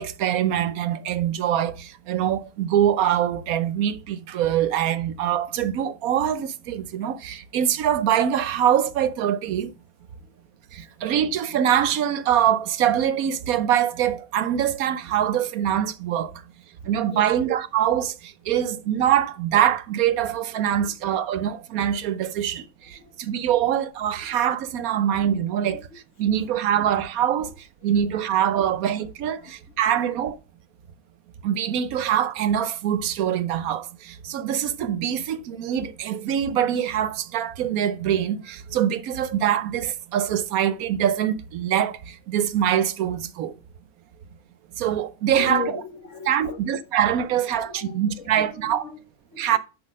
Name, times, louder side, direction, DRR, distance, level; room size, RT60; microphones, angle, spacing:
voice 1, 0.0-9.7 10.7-16.3 16.9-25.9 26.2-27.5 27.8-30.4 31.4-43.5 44.8-45.6 46.3-48.8 49.4-49.6, right 10 dB, 75° right, 1.1 m, -24 dB
voice 2, 22.9-23.6 24.2-24.4 25.7-25.8 26.4-26.5 27.8-27.9 28.6-28.7 29.4-29.5 29.8-30.0 45.3-46.7 47.5-49.6, left 5 dB, 55° left, 1.5 m, -38 dB
7.2 x 6.2 x 5.0 m
omnidirectional pair, 1.5 m